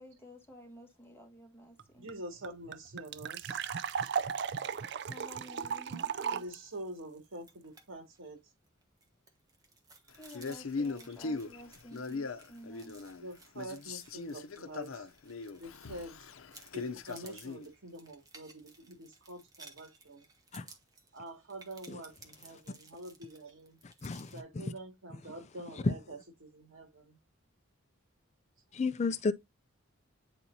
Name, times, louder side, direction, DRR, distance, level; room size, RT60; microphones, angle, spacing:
voice 1, 0.0-2.1 5.1-6.4 10.2-13.0, equal, 10° left, 1.5 m, -52 dB
sound 1, 1.8-1.9 2.1-2.2 2.4-6.6, right 6 dB, 55° right, 0.4 m, -35 dB
voice 2, 2.0-3.7 6.3-8.4 13.2-15.1 15.6-16.2 16.7-20.3 21.1-23.8 24.3-27.2, right 1 dB, 85° right, 2.3 m, -46 dB
sound 2, 7.4-7.8 8.1-8.3 8.7-16.1 16.5-24.4, right 3 dB, 20° right, 1.2 m, -58 dB
Male speech man speaking, 10.3-13.3 13.5-17.7, left 4 dB, 85° left, 0.7 m, -40 dB
voice 3, 23.8-24.7 25.3-25.4 25.7-26.0 28.7-29.3, left 3 dB, 35° left, 0.4 m, -33 dB
9.4 x 4.3 x 2.7 m
head